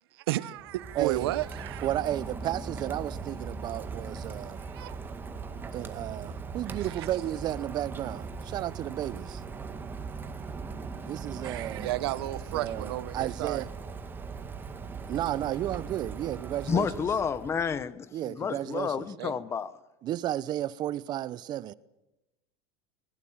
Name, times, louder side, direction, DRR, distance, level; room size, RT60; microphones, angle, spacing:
voice 1, 0.1-1.9 4.6-5.0 6.8-7.1 11.4-13.6 19.2-19.3, right 16 dB, 80° right, 1.0 m, -33 dB
Rain, 0.6-17.9, right 5 dB, 15° right, 1.7 m, -39 dB
voice 2, 0.9-1.3 1.8-4.6 5.7-9.4 11.0-11.9 12.5-13.7 15.1-17.0 18.1-19.1 20.0-21.7, right 13 dB, 35° right, 0.7 m, -33 dB
voice 3, 16.7-19.7, left 6 dB, 20° left, 0.8 m, -30 dB
21.5 x 20.0 x 7.3 m
supercardioid pair, 145°, 13 cm